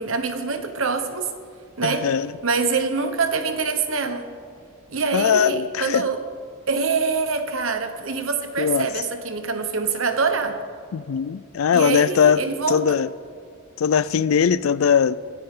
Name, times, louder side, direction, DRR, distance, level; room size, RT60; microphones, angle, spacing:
voice 1, 0.0-1.3 1.8-2.1 2.4-4.3 4.9-6.2 6.7-10.6 11.7-13.0, right 4 dB, 80° right, 1.2 m, -25 dB
voice 2, 1.8-2.3 5.1-6.1 8.6-8.9 10.9-12.4 12.7-13.1 13.8-15.1, left 7 dB, 90° left, 0.4 m, -20 dB
24.5 x 9.7 x 3.8 m
head